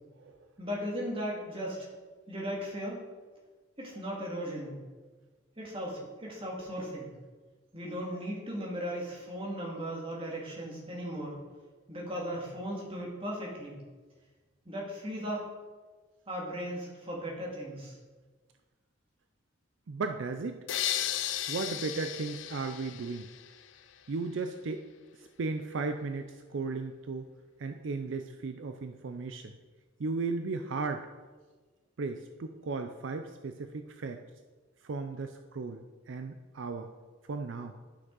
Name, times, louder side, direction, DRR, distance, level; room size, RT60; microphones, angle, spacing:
voice 1, 0.6-1.9 2.3-3.0 3.8-4.8 5.6-7.1 7.7-11.4 11.9-13.8 14.7-15.4 16.3-18.0, equal, 25° right, -3 dB, 2.0 m, -37 dB
voice 2, 19.9-20.6 21.5-23.3 24.1-24.8 25.2-27.3 27.6-29.5 30.0-31.1 32.0-34.2 34.8-36.9 37.3-37.7, right 4 dB, 70° right, 7 dB, 0.5 m, -35 dB
sound 1, 20.7-23.7, left 11 dB, 70° left, 0.4 m, -35 dB
11.5 x 6.1 x 3.9 m, 1.3 s
head